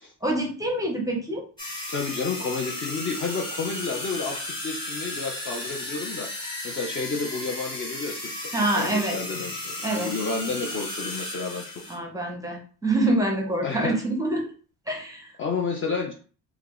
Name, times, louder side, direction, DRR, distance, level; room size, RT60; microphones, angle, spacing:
voice 1, 0.2-1.4 8.5-9.2 9.8-10.1 11.9-14.5 14.9-15.3, right 2 dB, 10° right, 1 dB, 0.7 m, -26 dB
sound 1, 1.6-11.9, left 1 dB, 10° left, 1.2 m, -34 dB
voice 2, 1.9-11.8 13.6-14.0 15.4-16.1, left 4 dB, 30° left, 0 dB, 0.4 m, -31 dB
3.2 x 2.3 x 3.7 m, 0.39 s
cardioid pair, 145°, 41 cm